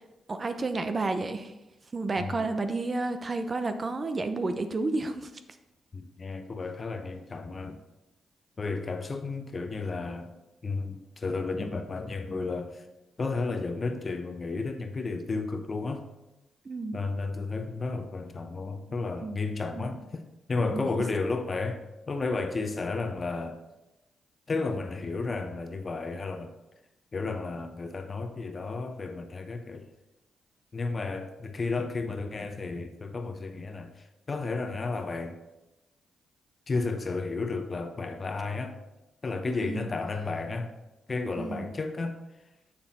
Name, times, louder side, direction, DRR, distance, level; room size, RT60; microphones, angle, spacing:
voice 1, 0.3-1.5 1.9-5.3 16.7-17.0 18.9-19.4 19.7-19.9 20.7-20.9 39.5-39.9 41.4-41.7, right 3 dB, 40° right, 8 dB, 0.7 m, -31 dB
voice 2, 2.2-2.5 5.9-7.8 8.6-10.3 10.6-12.8 13.2-16.1 16.9-20.2 20.5-23.6 24.5-26.5 27.1-29.9 30.7-33.9 34.3-35.4 36.7-38.8 39.2-40.7 41.1-42.2, left 3 dB, 45° left, 7 dB, 0.9 m, -32 dB
7.0 x 6.0 x 4.2 m, 0.97 s
supercardioid pair, 50°, 0 cm